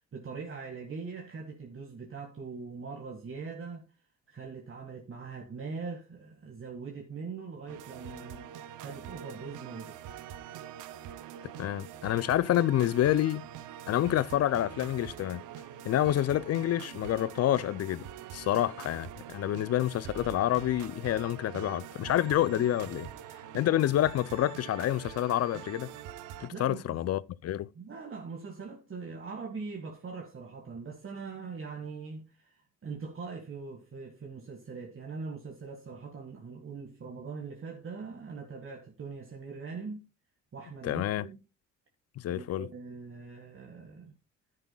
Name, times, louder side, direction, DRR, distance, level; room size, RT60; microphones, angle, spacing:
voice 1, 0.1-3.8 4.3-8.5 8.8-10.0 26.5-27.0 27.8-40.1 40.5-41.4 42.3-44.1, right 4 dB, 45° right, 1.8 m, -42 dB
sound 1, 7.7-26.5, right 9 dB, 90° right, 0.8 m, -44 dB
voice 2, 11.6-13.4 13.9-15.4 15.9-18.1 18.3-23.1 23.5-25.9 26.4-27.7 40.8-41.2 42.2-42.7, left 12 dB, 55° left, 0.5 m, -28 dB
10.5 x 9.8 x 2.3 m
cardioid pair, 90°, 30 cm